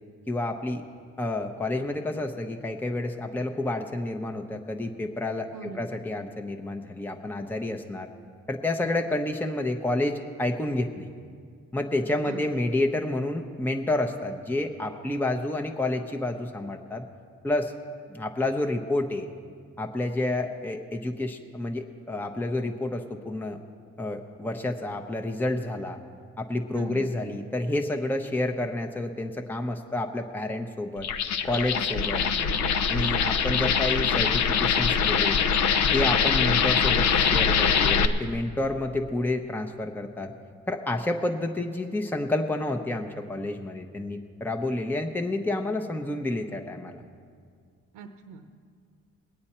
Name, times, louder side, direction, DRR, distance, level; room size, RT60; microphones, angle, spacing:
voice 1, 0.3-0.8 1.2-8.1 8.5-11.1 11.7-17.0 17.4-17.7 18.1-19.3 19.8-23.6 24.0-26.0 26.4-31.1 31.4-32.2 32.9-35.4 35.9-40.3 40.7-47.0, left 2 dB, 5° left, 4 dB, 0.8 m, -29 dB
voice 2, 5.5-5.9 12.2-12.5 26.7-27.1 32.3-32.6 47.9-48.5, right 4 dB, 85° right, 6 dB, 0.8 m, -41 dB
sound 1, 31.0-38.1, left 6 dB, 65° left, 0.7 m, -23 dB
21.0 x 8.6 x 4.3 m, 2.1 s
cardioid pair, 90°, 30 cm